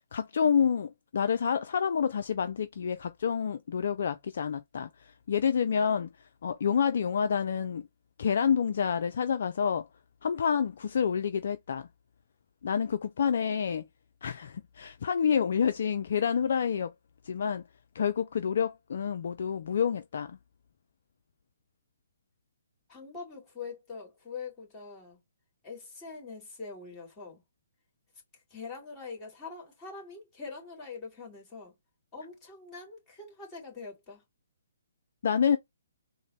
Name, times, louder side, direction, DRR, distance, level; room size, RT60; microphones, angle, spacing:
voice 1, 0.1-7.9 8.2-9.9 10.2-11.9 12.6-13.9 14.2-16.9 17.2-17.6 17.9-20.4 35.2-35.6, left 7 dB, 55° left, 0.3 m, -28 dB
voice 2, 22.9-25.2 25.6-27.4 28.5-31.7 32.1-34.2, left 4 dB, 20° left, 2.2 m, -43 dB
3.8 x 2.0 x 3.2 m
figure-of-eight pair, 130°, 0 cm